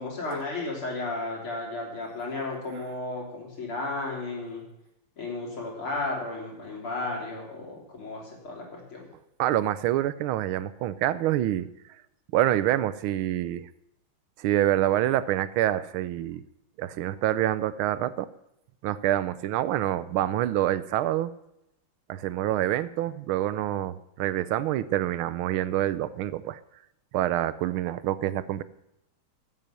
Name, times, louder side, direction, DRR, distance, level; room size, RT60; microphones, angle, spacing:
voice 1, 0.0-4.6 5.2-9.0, left 2 dB, 80° left, -2 dB, 4.4 m, -34 dB
voice 2, 9.4-11.7 12.3-13.7 14.4-16.4 16.8-18.3 18.8-21.3 22.1-26.6 27.1-28.6, right 13 dB, 85° right, 15 dB, 1.5 m, -26 dB
15.5 x 7.8 x 6.7 m, 0.85 s
omnidirectional pair, 2.3 m